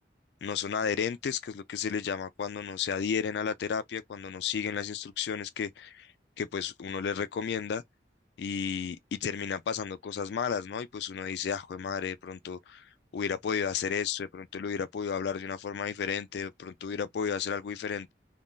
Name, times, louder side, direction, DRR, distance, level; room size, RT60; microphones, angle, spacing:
voice 1, 0.4-6.1 6.4-7.8 8.4-18.1, left 6 dB, 70° left, 0.3 m, -33 dB
3.6 x 2.3 x 2.5 m
head